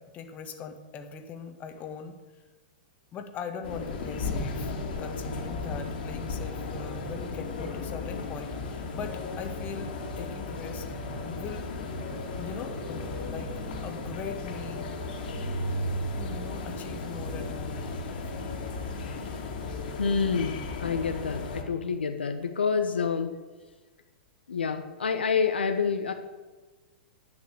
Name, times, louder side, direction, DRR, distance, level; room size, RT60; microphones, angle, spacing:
voice 1, 0.0-2.1 3.1-9.9 10.2-10.8 11.2-11.7 12.4-13.5 13.8-14.8 16.2-18.3, left 6 dB, 30° left, 5 dB, 1.6 m, -41 dB
sound 1, 3.6-21.6, left 2 dB, 60° left, 2.4 m, -35 dB
voice 2, 20.0-23.3 24.5-26.1, left 5 dB, 75° left, 6 dB, 0.9 m, -28 dB
10.5 x 6.2 x 8.5 m, 1.3 s
figure-of-eight pair, 105°, 6 cm